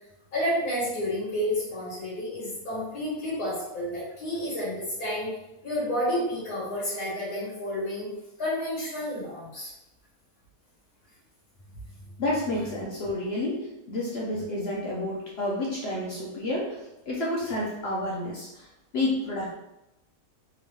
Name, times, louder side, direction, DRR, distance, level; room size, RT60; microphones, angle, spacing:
voice 1, 0.3-5.3 5.6-8.1 8.4-9.7, equal, 80° left, -9 dB, 1.9 m, -30 dB
voice 2, 12.2-18.7 18.9-19.5, left 1 dB, 60° left, -4 dB, 0.6 m, -30 dB
3.8 x 2.2 x 3.0 m, 0.92 s
omnidirectional pair, 1.7 m